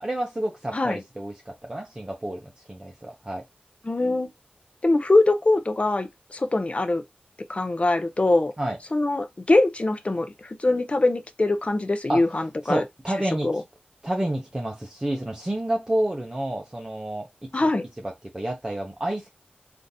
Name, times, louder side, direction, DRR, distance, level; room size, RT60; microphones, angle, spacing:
voice 1, 0.0-3.4 8.6-8.8 12.1-12.2 12.6-13.6 14.0-17.3 17.6-17.7 18.0-19.3, right 1 dB, 25° right, 0.6 m, -29 dB
voice 2, 3.8-4.3 4.8-7.0 7.5-8.5 8.9-12.8 13.4-13.6 17.5-17.8, left 2 dB, 35° left, 0.5 m, -23 dB
3.7 x 2.5 x 2.6 m
wide cardioid pair, 85°, 3 cm